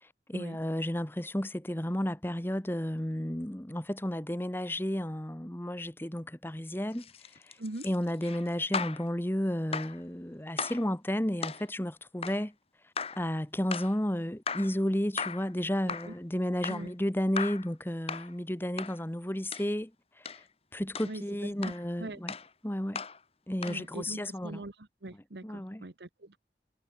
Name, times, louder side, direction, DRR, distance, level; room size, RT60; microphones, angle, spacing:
voice 1, 0.0-7.1 7.4-7.6 7.8-12.5 13.2-19.9 20.2-20.4 20.7-22.3 22.6-23.0 23.5-24.6 25.4-25.8, equal, 10° left, 1.1 m, -32 dB
sound 1, 6.9-9.1 9.7-10.0 10.6-10.9 11.4-11.7 12.2-12.4 13.0-13.3 13.7-14.0 14.5-14.8 15.2-15.5 15.9-16.2 16.6-16.9 17.4-17.7 18.1-18.3 18.8-19.0 19.5-19.7 20.3-20.4 20.9-21.2 21.6-21.8 22.3-22.5 23.0-23.2 23.6-23.8, left 5 dB, 30° left, 2.3 m, -37 dB
voice 2, 15.8-16.1 16.7-16.9 21.0-22.2 23.6-26.4, right 2 dB, 65° right, 1.3 m, -42 dB
head